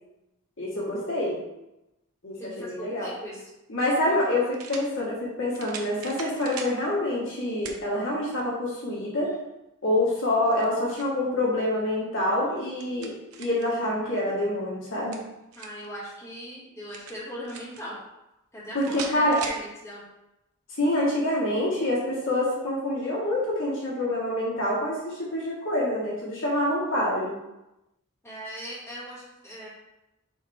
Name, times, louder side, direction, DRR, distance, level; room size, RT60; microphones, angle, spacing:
voice 1, 0.6-1.4 2.2-3.1 3.7-9.3 9.8-13.1 13.4-15.2 18.7-19.4 20.8-27.3, left 1 dB, 60° left, -5 dB, 1.7 m, -26 dB
voice 2, 2.4-3.5 4.1-4.3 15.5-18.0 18.5-20.1 28.2-29.7, equal, 10° left, -10 dB, 2.3 m, -39 dB
sound 1, 3.3-3.4 4.5-4.9 5.5-6.8 7.6-7.8 8.4-8.5 10.4-11.2 12.5-13.7 14.9-15.9 16.9-17.8 18.8-19.6, right 5 dB, 75° right, 0.8 m, -40 dB
6.3 x 3.4 x 4.4 m, 0.92 s
head